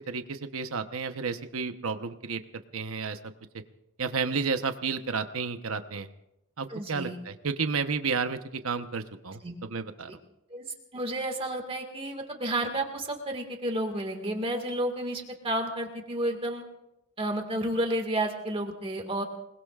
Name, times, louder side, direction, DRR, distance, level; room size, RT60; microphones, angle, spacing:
voice 1, 0.0-2.4 2.7-3.2 4.0-6.1 6.6-10.1, right 5 dB, 70° right, 8 dB, 1.0 m, -31 dB
voice 2, 6.7-7.2 9.4-9.5 10.5-10.7 10.9-16.6 17.2-19.2, right 1 dB, 25° right, 3 dB, 1.9 m, -31 dB
28.0 x 20.0 x 2.5 m, 0.87 s
head